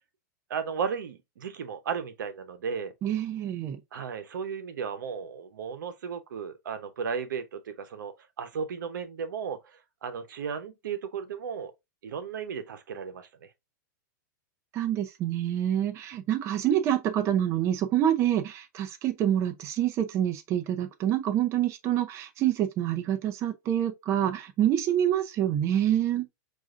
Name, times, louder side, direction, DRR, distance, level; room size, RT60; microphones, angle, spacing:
voice 1, 0.5-2.9 3.9-11.7 12.0-13.5, right 6 dB, 90° right, 0.8 m, -35 dB
voice 2, 3.0-3.8 14.7-26.3, right 11 dB, 30° right, 0.6 m, -27 dB
6.1 x 2.5 x 2.5 m
supercardioid pair, 145°, 10 cm